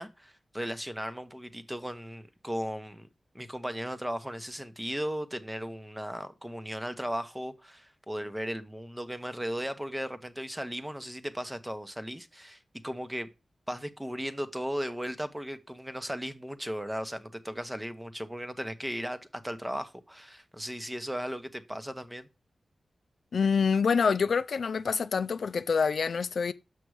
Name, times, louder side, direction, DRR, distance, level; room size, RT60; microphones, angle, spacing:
voice 1, 0.0-3.1 3.3-13.3 13.7-22.3, equal, 10° right, 0.9 m, -36 dB
voice 2, 23.3-26.5, left 5 dB, 70° left, 0.4 m, -26 dB
6.3 x 6.0 x 4.8 m
cardioid pair, 75°, 0 cm